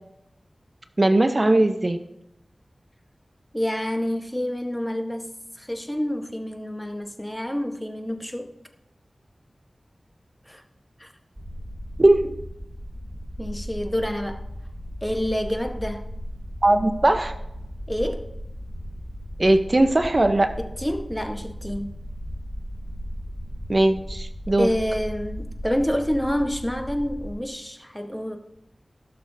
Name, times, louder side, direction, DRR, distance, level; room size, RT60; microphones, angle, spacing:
voice 1, 1.0-2.0 12.0-12.2 16.6-17.3 19.4-20.5 23.7-24.7, right 1 dB, 40° right, 0.6 m, -19 dB
voice 2, 3.5-8.5 10.5-10.6 11.0-11.1 13.4-14.4 15.0-16.1 17.9-18.3 20.6-22.0 24.6-28.4, equal, 10° left, 1.0 m, -28 dB
sound 1, 11.4-27.3, equal, 20° right, 2.5 m, -36 dB
16.0 x 6.5 x 2.6 m
wide cardioid pair, 50°, 0 cm